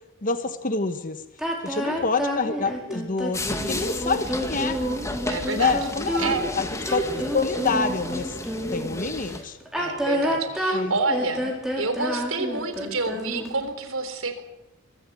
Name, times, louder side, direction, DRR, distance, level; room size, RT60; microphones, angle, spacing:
voice 1, 0.2-1.2 1.6-4.8 5.5-7.0 7.3-8.3 8.7-9.6 10.7-11.0, left 4 dB, 40° left, 9 dB, 1.2 m, -27 dB
sound 1, 1.4-8.9 9.6-13.6, equal, 5° right, 4.8 m, -29 dB
sound 2, 3.3-9.4, left 2 dB, 15° left, 2.1 m, -33 dB
voice 2, 5.3-5.8 6.2-6.5 9.8-11.4 11.8-14.4, right 3 dB, 80° right, 9 dB, 3.7 m, -28 dB
23.5 x 15.5 x 8.5 m, 0.97 s
head